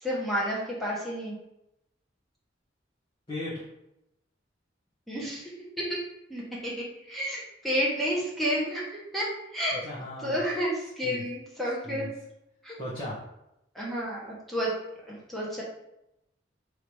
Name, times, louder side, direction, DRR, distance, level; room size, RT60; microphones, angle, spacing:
voice 1, 0.0-1.3 5.1-5.4 5.8-6.0 6.3-9.8 10.2-12.1 12.6-12.8 13.7-14.7 15.1-15.6, equal, ahead, -6 dB, 1.1 m, -31 dB
voice 2, 3.3-3.6 9.8-10.4 11.0-11.2 11.8-12.1 12.8-13.2, left 1 dB, 25° left, -10 dB, 1.0 m, -36 dB
3.3 x 2.8 x 4.6 m, 0.85 s
head